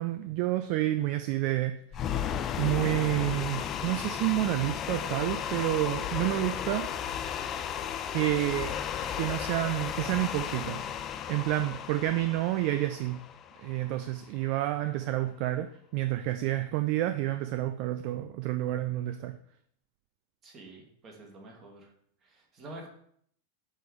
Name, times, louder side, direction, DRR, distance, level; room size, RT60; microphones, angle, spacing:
voice 1, 0.0-1.7 2.1-6.9 8.1-8.7 9.2-10.8 11.3-13.2 13.6-15.7 15.9-19.3, right 15 dB, 45° right, 8 dB, 0.4 m, -29 dB
sound 1, 1.9-14.1, left 9 dB, 30° left, 0.4 m, -34 dB
voice 2, 20.4-21.9 22.2-22.9, right 2 dB, 30° right, 1 dB, 1.8 m, -48 dB
7.5 x 3.5 x 4.9 m, 0.65 s
figure-of-eight pair, 90°, 0 cm